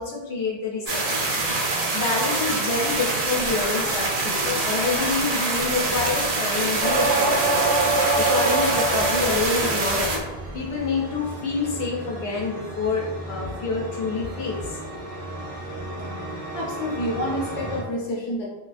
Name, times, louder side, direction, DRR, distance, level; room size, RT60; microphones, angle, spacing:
voice 1, 0.0-1.3 1.9-7.7 8.2-14.8, left 4 dB, 75° left, -3 dB, 0.8 m, -27 dB
sound 1, 0.9-10.2, right 2 dB, 55° right, 0.4 m, -25 dB
sound 2, 6.3-17.8, right 1 dB, 15° left, 0.4 m, -36 dB
sound 3, 6.8-9.5 9.9-10.5, right 2 dB, 80° right, 0.8 m, -23 dB
voice 2, 16.5-18.5, equal, 45° left, -4 dB, 0.7 m, -28 dB
2.4 x 2.2 x 2.4 m, 1.1 s
omnidirectional pair, 1.1 m